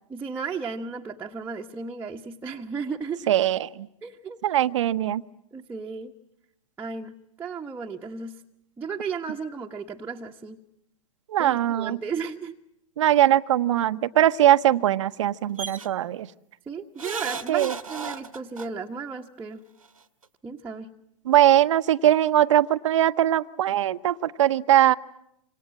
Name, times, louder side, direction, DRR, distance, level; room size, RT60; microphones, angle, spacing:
voice 1, 0.1-3.3 4.0-4.4 5.5-6.1 6.8-8.3 8.8-10.6 11.4-12.6 16.7-19.6 20.4-20.9, right 5 dB, 10° right, -1 dB, 1.4 m, -34 dB
voice 2, 3.3-3.9 4.4-5.2 11.3-12.0 13.0-16.3 17.5-17.7 21.3-24.9, right 12 dB, 65° right, 12 dB, 1.0 m, -21 dB
sound 1, 15.6-15.9 17.0-18.7 19.9-20.0 20.2-20.3, right 5 dB, 90° right, 1.5 m, -34 dB
27.5 x 26.5 x 7.7 m, 0.81 s
hypercardioid pair, 105°, 17 cm